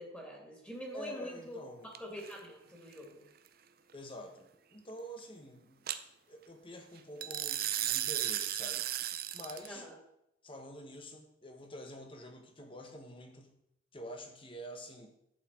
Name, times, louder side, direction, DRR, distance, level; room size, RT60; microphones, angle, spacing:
voice 1, 0.0-1.6 2.0-3.2 9.6-9.9, equal, 5° left, -1 dB, 2.8 m, -45 dB
voice 2, 0.9-1.9 3.9-5.9 6.3-8.8 9.3-9.8 10.4-13.6 13.9-15.1, equal, 30° left, 5 dB, 1.5 m, -47 dB
sound 1, 1.9-2.3 5.9-6.0 7.2-9.7, right 12 dB, 50° right, 0.6 m, -34 dB
11.0 x 8.4 x 4.7 m, 0.78 s
head